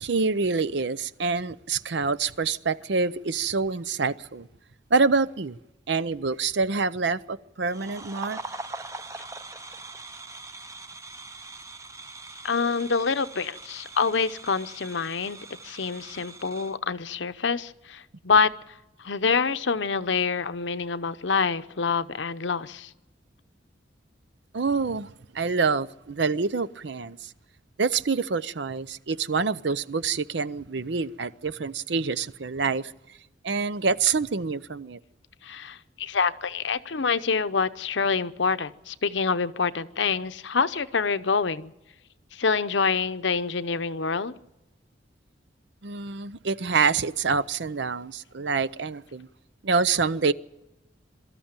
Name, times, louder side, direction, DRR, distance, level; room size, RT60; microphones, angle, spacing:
voice 1, 0.0-4.5 4.9-5.6 5.9-8.4 24.5-27.3 27.8-32.9 33.4-35.0 45.8-49.3 49.6-50.3, right 4 dB, 70° right, 0.6 m, -26 dB
sound 1, 7.7-16.8, right 2 dB, 15° right, 0.7 m, -42 dB
voice 2, 12.4-15.4 15.6-18.5 19.0-22.9 35.4-41.7 42.3-44.3, left 5 dB, 75° left, 0.8 m, -26 dB
23.0 x 13.5 x 8.9 m
head